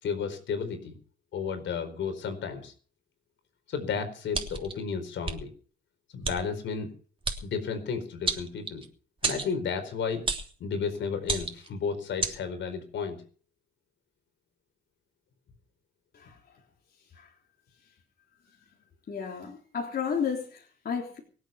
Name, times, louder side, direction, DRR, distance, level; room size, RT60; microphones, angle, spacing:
voice 1, 0.0-0.9 1.3-2.7 3.7-5.5 6.1-6.9 7.4-8.8 9.2-10.2 10.6-13.2, left 6 dB, 70° left, 8 dB, 4.6 m, -32 dB
sound 1, 4.3-4.7 5.2-5.4 6.2-6.4 7.2-7.4 8.3-8.9 9.2-9.5 10.3-10.5 11.2-11.7 12.2-12.4, right 4 dB, 25° right, 3.2 m, -30 dB
voice 2, 19.1-21.2, left 6 dB, 50° left, 0 dB, 3.7 m, -32 dB
24.0 x 8.4 x 6.0 m, 0.41 s
cardioid pair, 90°, 20 cm